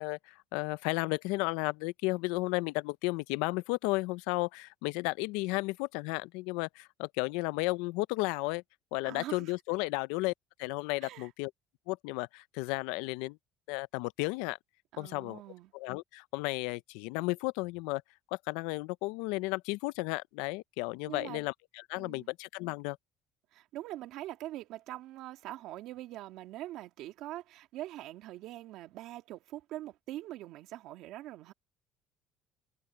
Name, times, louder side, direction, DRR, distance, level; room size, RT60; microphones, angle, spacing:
voice 1, 0.0-8.6 8.9-10.3 10.6-11.5 11.9-13.4 13.7-14.6 15.0-15.4 15.7-18.0 18.3-23.0, left 23 dB, 85° left, 0.5 m, -33 dB
voice 2, 9.0-9.5 11.0-11.3 14.9-15.7 21.0-21.5 22.0-22.3 23.5-31.5, right 15 dB, 70° right, 2.4 m, -43 dB
supercardioid pair, 95°, 0 cm